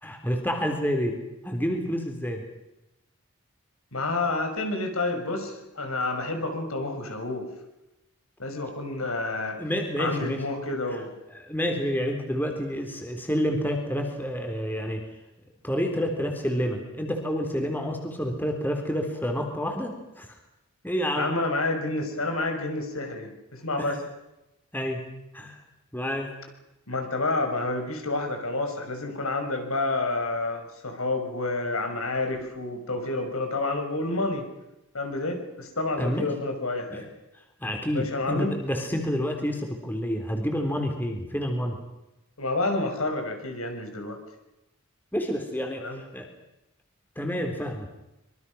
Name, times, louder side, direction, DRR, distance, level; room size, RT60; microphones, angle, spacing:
voice 1, 0.0-1.2 1.4-2.4 9.6-10.4 11.4-15.0 15.6-20.4 20.8-21.3 23.8-23.9 24.7-25.0 25.3-25.6 25.9-26.3 36.0-36.3 36.9-37.0 37.6-41.8 45.1-46.3 47.2-47.9, equal, 10° left, 3 dB, 3.7 m, -29 dB
voice 2, 3.9-7.5 8.4-9.6 10.0-11.1 21.1-24.0 26.9-34.5 34.9-37.1 37.9-38.5 42.4-44.2 45.8-46.0, left 2 dB, 80° left, 4 dB, 5.9 m, -29 dB
26.0 x 24.0 x 6.3 m, 0.94 s
head